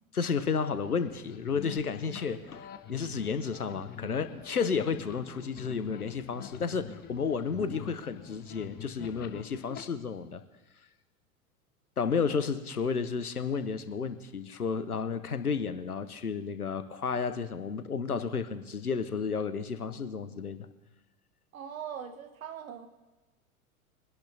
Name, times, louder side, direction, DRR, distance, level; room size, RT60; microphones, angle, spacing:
voice 1, 0.1-10.4 12.0-20.6, left 5 dB, 85° left, 11 dB, 1.0 m, -32 dB
sound 1, 0.8-9.8, left 9 dB, 20° left, 0.8 m, -46 dB
voice 2, 21.5-22.9, right 8 dB, 65° right, 8 dB, 1.4 m, -41 dB
23.5 x 11.5 x 2.8 m, 1.2 s
figure-of-eight pair, 90°, 43 cm